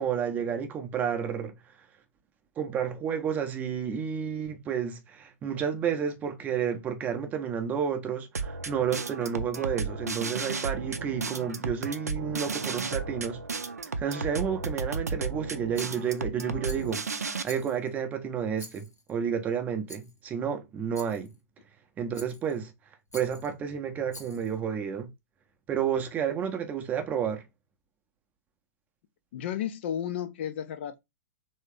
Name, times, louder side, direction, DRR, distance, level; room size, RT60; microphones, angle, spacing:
voice 1, 0.0-1.5 2.6-13.4 14.0-21.3 22.0-22.7 23.1-25.1 25.7-27.4, right 7 dB, 20° right, 0.6 m, -31 dB
sound 1, 8.3-17.4, right 4 dB, 75° right, 0.5 m, -33 dB
Rattle, 15.7-16.2 16.6-17.0 17.4-18.0 18.6-19.1 19.9-20.2 20.9-21.3 22.1-22.6 23.1-23.5 24.1-24.6, left 1 dB, 85° left, 0.9 m, -48 dB
voice 2, 29.3-31.0, left 10 dB, 45° left, 0.4 m, -33 dB
3.3 x 2.7 x 3.2 m
figure-of-eight pair, 110°, 9 cm